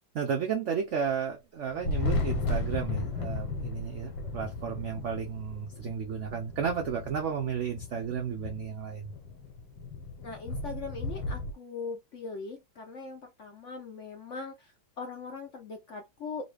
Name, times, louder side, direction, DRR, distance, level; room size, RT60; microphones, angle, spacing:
voice 1, 0.1-9.1, right 7 dB, 80° right, 0.6 m, -33 dB
Thunder, 1.7-11.5, left 3 dB, 75° left, 1.7 m, -35 dB
voice 2, 10.2-16.4, left 4 dB, 60° left, 0.8 m, -40 dB
4.0 x 2.4 x 3.2 m
omnidirectional pair, 2.0 m